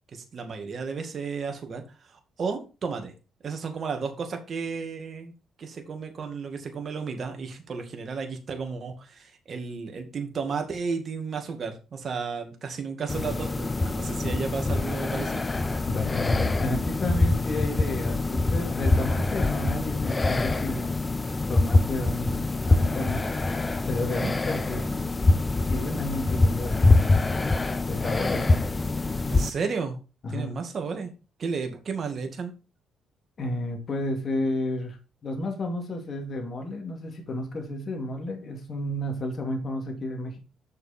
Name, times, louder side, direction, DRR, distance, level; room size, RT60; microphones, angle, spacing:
voice 1, 0.1-3.1 3.4-5.3 5.6-15.4 24.1-24.4 29.3-30.0 30.3-31.1 31.4-32.5, right 5 dB, 50° right, 5 dB, 2.0 m, -33 dB
sound 1, 13.1-29.5, left 2 dB, 25° left, 0.6 m, -25 dB
voice 2, 15.9-20.9 21.5-23.3 23.9-24.9 25.6-26.9 27.9-28.5 30.2-30.6 33.4-40.4, left 2 dB, 45° left, 2 dB, 2.5 m, -32 dB
6.8 x 6.5 x 4.3 m, 0.31 s
cardioid pair, 90°, 0 cm